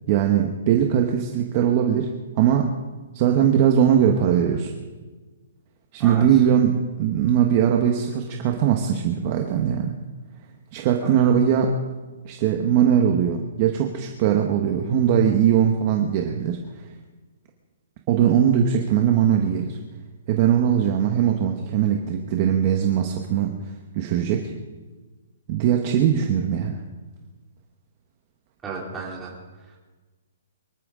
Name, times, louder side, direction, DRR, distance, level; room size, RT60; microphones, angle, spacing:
voice 1, 0.1-2.7 3.1-4.7 5.9-9.9 10.7-11.7 12.2-16.6 18.1-19.8 20.3-23.5 23.9-24.5 25.5-26.8, right 9 dB, 25° right, 3 dB, 1.1 m, -20 dB
voice 2, 11.0-11.4 28.6-29.3, right 4 dB, 10° right, -3 dB, 2.9 m, -34 dB
24.0 x 13.5 x 3.8 m, 1.3 s
hypercardioid pair, 175°, 0 cm